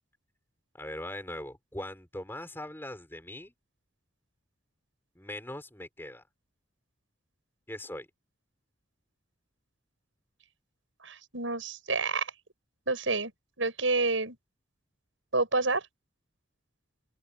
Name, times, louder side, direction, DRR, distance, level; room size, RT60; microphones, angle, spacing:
voice 1, 0.8-3.5 5.2-6.2 7.7-8.1, left 1 dB, 10° left, 5.7 m, -40 dB
voice 2, 11.0-12.3 12.9-13.3 13.6-14.4 15.3-15.8, right 3 dB, 85° right, 6.8 m, -28 dB
open air
head